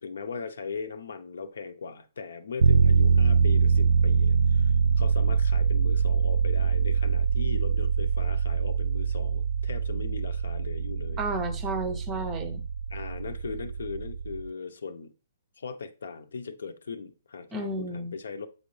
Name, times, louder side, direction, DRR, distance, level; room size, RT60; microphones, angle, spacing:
voice 1, 0.0-11.2 12.9-15.1 15.6-18.5, left 5 dB, 80° left, 0.8 m, -39 dB
sound 1, 2.6-14.5, right 6 dB, 75° right, 0.3 m, -24 dB
voice 2, 11.2-12.6 17.5-18.1, right 2 dB, 10° right, 0.6 m, -32 dB
7.9 x 4.1 x 3.2 m
hypercardioid pair, 175°, 0 cm